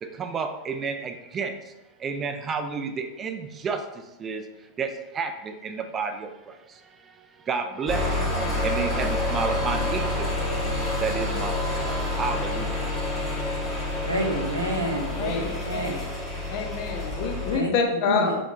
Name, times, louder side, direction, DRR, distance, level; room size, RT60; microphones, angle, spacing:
voice 1, 0.0-1.7 2.0-4.5 4.8-10.6 11.0-11.9 12.2-13.1, right 5 dB, 25° right, 7 dB, 0.3 m, -32 dB
sound 1, 7.9-17.6, left 2 dB, 10° left, 1.0 m, -28 dB
voice 2, 14.0-15.9 17.5-17.7 18.0-18.3, right 1 dB, 80° right, 0 dB, 0.6 m, -28 dB
voice 3, 15.2-16.0 16.5-18.4, left 5 dB, 45° left, 3 dB, 0.5 m, -27 dB
3.5 x 2.9 x 2.5 m, 1.0 s
figure-of-eight pair, 90°, 0 cm